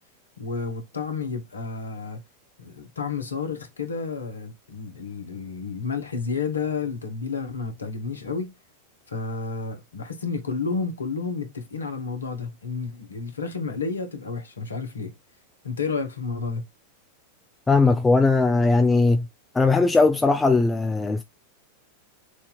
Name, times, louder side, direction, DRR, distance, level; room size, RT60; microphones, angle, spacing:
voice 1, 0.4-2.2 2.6-8.5 9.1-15.1 15.6-16.6, left 5 dB, 75° left, 1.4 m, -31 dB
voice 2, 17.7-19.3 19.5-21.2, left 3 dB, 10° left, 0.5 m, -19 dB
6.2 x 2.8 x 2.5 m
figure-of-eight pair, 90°, 0 cm